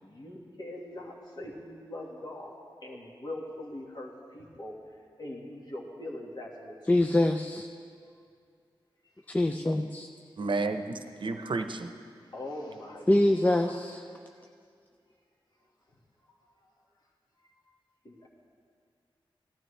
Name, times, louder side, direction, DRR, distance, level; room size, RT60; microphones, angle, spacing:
voice 1, 0.0-4.7 5.2-6.7 7.0-7.2 12.3-13.1 13.4-13.8 18.1-18.3, left 1 dB, 50° left, -2 dB, 1.8 m, -42 dB
voice 2, 6.9-7.7 9.3-10.1 13.1-14.0, left 1 dB, 20° left, 4 dB, 0.5 m, -24 dB
voice 3, 10.4-11.9, right 3 dB, 60° right, 7 dB, 0.8 m, -31 dB
17.5 x 12.0 x 3.3 m, 2.2 s
wide cardioid pair, 65°, 9 cm